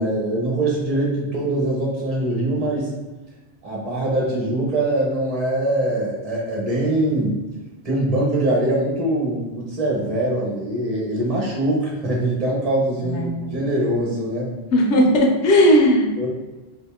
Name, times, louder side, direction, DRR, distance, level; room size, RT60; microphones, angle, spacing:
voice 1, 0.0-2.9 3.6-7.4 7.8-14.5 16.2-16.3, right 1 dB, 35° right, -3 dB, 1.0 m, -23 dB
voice 2, 13.0-13.5 14.7-16.3, equal, 85° left, 0 dB, 1.0 m, -17 dB
2.8 x 2.7 x 3.5 m, 1.1 s
omnidirectional pair, 1.2 m